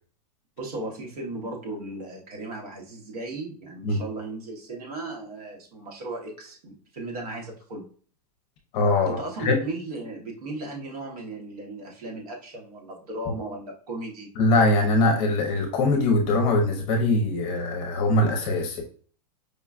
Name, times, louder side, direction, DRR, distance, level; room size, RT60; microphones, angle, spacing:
voice 1, 0.6-7.9 9.0-14.3, right 2 dB, 70° right, -1 dB, 1.2 m, -36 dB
voice 2, 8.7-9.6 14.4-18.8, left 2 dB, 35° left, 3 dB, 0.7 m, -22 dB
4.9 x 2.3 x 2.4 m, 0.43 s
supercardioid pair, 150°, 20 cm